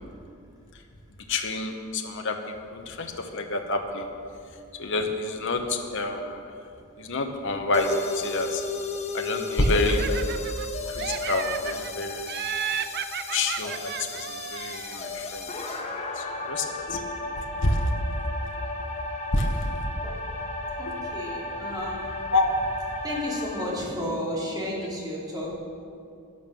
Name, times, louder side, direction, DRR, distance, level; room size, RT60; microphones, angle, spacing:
voice 1, 1.3-2.4 2.7-4.1 4.8-6.4 7.0-8.6 9.1-10.3 10.8-12.3 13.3-15.5 15.9-17.0 17.6-17.9 19.3-19.7 22.3-22.5, left 2 dB, 60° left, 3 dB, 1.1 m, -28 dB
sound 1, 7.7-23.7, left 2 dB, 30° left, 1.3 m, -34 dB
Laughter, 9.6-10.7 11.0-11.9 12.3-15.1, right 9 dB, 50° right, 0.4 m, -34 dB
voice 2, 20.6-22.1 23.0-25.5, left 1 dB, 20° right, -5 dB, 3.2 m, -32 dB
11.5 x 11.0 x 7.0 m, 2.5 s
head